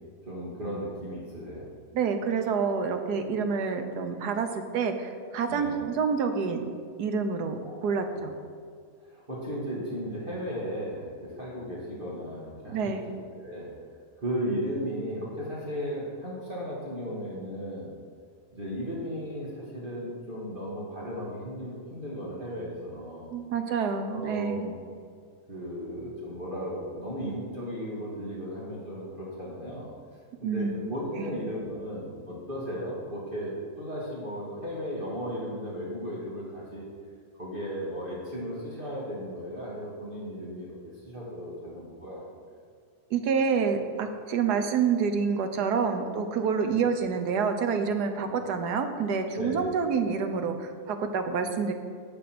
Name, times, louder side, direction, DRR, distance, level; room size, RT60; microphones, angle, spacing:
voice 1, 0.2-1.7 5.5-5.8 7.6-8.3 9.0-12.9 13.3-13.7 14.2-17.9 18.5-23.3 24.1-24.8 25.5-29.9 30.4-36.9 37.4-40.7 41.0-42.5 46.6-46.8 48.2-48.3 49.3-49.7, equal, 35° right, -6 dB, 2.1 m, -35 dB
voice 2, 1.9-4.5 4.7-6.6 7.0-8.3 12.7-13.0 23.3-24.7 30.4-31.3 43.1-51.7, right 5 dB, 80° right, 6 dB, 1.4 m, -28 dB
9.5 x 6.7 x 6.0 m, 2.2 s
omnidirectional pair, 1.7 m